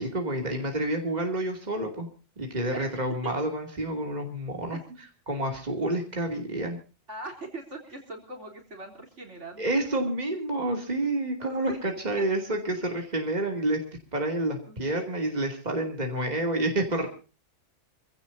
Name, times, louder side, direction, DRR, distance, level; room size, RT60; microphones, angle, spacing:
voice 1, 0.0-2.1 2.4-4.8 5.3-6.8 9.6-13.8 14.1-17.1, right 1 dB, 35° right, 3 dB, 2.9 m, -29 dB
voice 2, 7.1-10.1 11.4-11.8 12.9-13.0 14.7-15.1, right 2 dB, 65° right, 1 dB, 4.1 m, -42 dB
26.5 x 16.0 x 2.7 m, 0.34 s
omnidirectional pair, 1.3 m